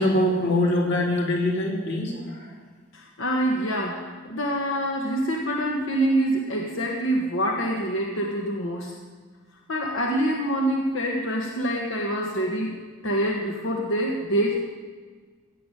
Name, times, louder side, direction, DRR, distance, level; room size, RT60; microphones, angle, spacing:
voice 1, 0.0-2.5, left 1 dB, 55° left, -1 dB, 3.2 m, -23 dB
voice 2, 2.9-8.9 9.7-12.7 13.0-14.6, right 1 dB, 80° left, 0 dB, 1.6 m, -26 dB
16.5 x 7.2 x 9.2 m, 1.5 s
head